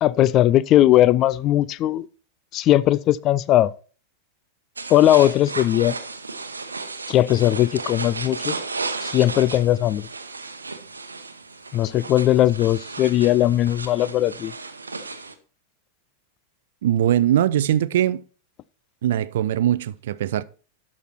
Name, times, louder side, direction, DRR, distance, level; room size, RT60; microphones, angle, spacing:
voice 1, 0.0-2.1 2.5-3.7 4.9-6.0 7.1-8.6 9.0-10.1 11.7-14.5, left 13 dB, 35° left, 0.4 m, -18 dB
sound 1, 4.8-15.3, right 3 dB, 75° right, 0.9 m, -34 dB
voice 2, 16.8-18.2 19.0-20.4, right 11 dB, 55° right, 0.4 m, -21 dB
11.5 x 6.3 x 4.3 m
figure-of-eight pair, 90°, 0 cm